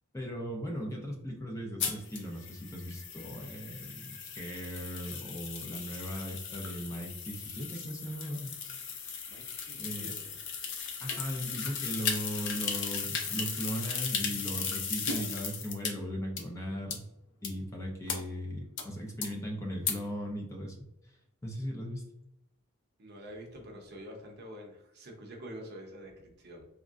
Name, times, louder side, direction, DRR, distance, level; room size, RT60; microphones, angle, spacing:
voice 1, 0.1-8.6 9.7-10.1 11.0-17.0 17.4-20.8 21.0-21.1 21.4-22.1, equal, 15° left, 0 dB, 0.5 m, -38 dB
sound 1, 1.8-15.9 16.4-16.5 16.9-17.0 17.4-17.5 18.1-18.2 18.8-18.9 19.2-19.3 19.9-20.0, left 6 dB, 60° left, 0.5 m, -36 dB
voice 2, 9.3-10.4 23.0-26.6, equal, 50° right, 1 dB, 0.7 m, -47 dB
3.5 x 2.1 x 2.4 m, 0.81 s
head